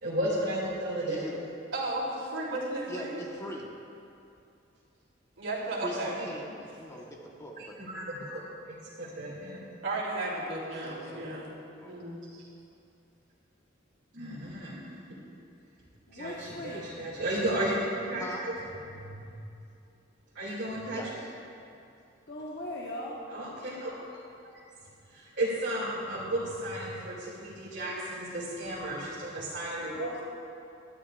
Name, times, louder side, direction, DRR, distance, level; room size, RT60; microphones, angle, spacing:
voice 1, 0.0-1.3 7.6-8.4 8.7-9.6 14.1-15.2 16.1-18.5 18.9-19.4 20.3-21.0 23.3-23.9 25.1-30.2, right 1 dB, 65° right, -9 dB, 2.5 m, -34 dB
voice 2, 1.1-1.4 2.9-3.7 5.8-7.8 10.8-11.2 11.8-12.0 18.2-18.4 20.9-21.3, equal, 15° left, -2 dB, 1.2 m, -41 dB
voice 3, 1.7-3.2 5.4-6.1 9.8-11.5 11.9-12.5, right 2 dB, 85° right, -4 dB, 3.2 m, -34 dB
voice 4, 16.1-17.0 22.3-23.2 29.9-30.2, left 1 dB, 55° left, -4 dB, 1.3 m, -39 dB
20.0 x 13.0 x 2.5 m, 2.6 s
head